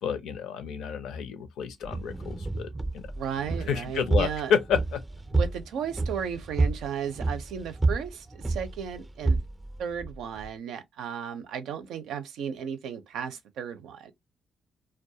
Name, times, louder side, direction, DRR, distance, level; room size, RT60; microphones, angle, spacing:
voice 1, 0.0-2.7 2.9-3.0 3.7-5.0, left 7 dB, 80° left, 0.5 m, -29 dB
sound 1, 1.8-10.5, right 3 dB, 15° right, 0.4 m, -30 dB
voice 2, 3.2-4.5 5.3-9.4 9.8-14.1, right 8 dB, 80° right, 0.5 m, -35 dB
2.3 x 2.1 x 2.7 m
cardioid pair, 90°, 0 cm